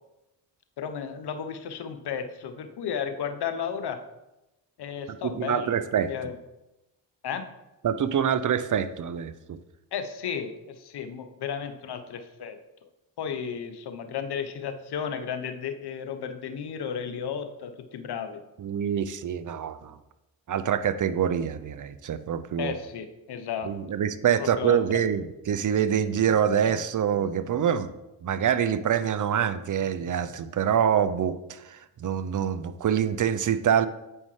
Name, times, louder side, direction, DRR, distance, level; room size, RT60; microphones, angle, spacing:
voice 1, 0.8-4.0 4.8-5.8 6.1-6.4 7.2-7.5 9.9-12.6 13.2-18.4 22.6-23.7 24.4-25.0, left 7 dB, 60° left, 7 dB, 0.9 m, -33 dB
voice 2, 5.2-6.1 7.8-9.6 18.6-20.0 20.5-22.7 23.6-27.9 28.2-33.9, right 8 dB, 45° right, 13 dB, 0.6 m, -25 dB
8.7 x 5.3 x 3.2 m, 0.95 s
hypercardioid pair, 45°, 45 cm